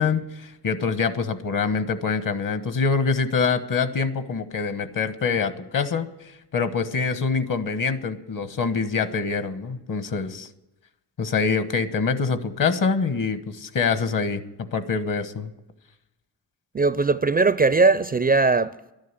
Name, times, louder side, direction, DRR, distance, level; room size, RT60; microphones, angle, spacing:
voice 1, 0.0-10.5 11.2-15.5, left 5 dB, 50° left, 1.2 m, -25 dB
voice 2, 16.7-18.9, right 3 dB, 20° right, 0.5 m, -20 dB
12.5 x 10.5 x 9.7 m
cardioid pair, 80°, 42 cm